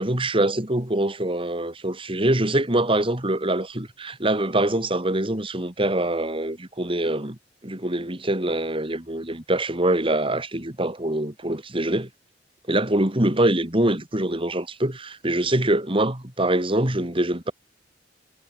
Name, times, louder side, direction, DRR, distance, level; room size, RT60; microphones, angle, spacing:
voice 1, 0.0-7.4 7.6-12.1 12.7-17.5, right 1 dB, 30° right, 3.3 m, -24 dB
head